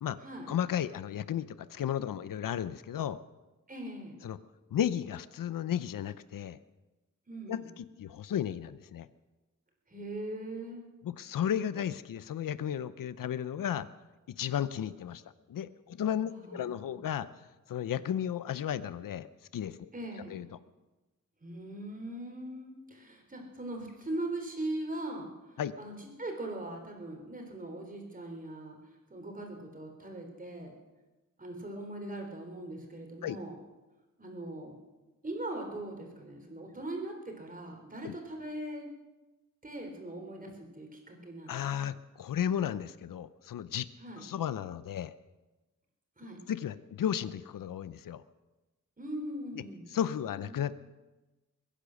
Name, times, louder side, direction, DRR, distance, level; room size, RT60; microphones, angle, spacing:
voice 1, 0.5-3.2 4.2-4.4 4.7-6.6 7.5-9.1 11.0-13.9 14.4-15.2 15.5-17.3 17.7-19.3 19.5-19.9 20.3-20.5 25.6-25.7 33.2-33.4 38.0-38.1 41.5-43.9 44.2-45.1 46.5-48.2 49.9-50.8, left 9 dB, 80° left, 15 dB, 0.7 m, -34 dB
voice 2, 3.7-4.2 7.3-7.7 9.9-10.9 16.3-17.0 19.9-20.4 21.4-28.8 29.1-30.7 31.4-33.6 34.2-34.8 35.2-38.9 39.6-41.6 44.0-44.2 46.2-46.4 49.0-49.9 50.2-50.7, right 1 dB, 25° right, 2 dB, 3.8 m, -40 dB
22.5 x 10.0 x 6.4 m, 1.1 s
wide cardioid pair, 105°, 32 cm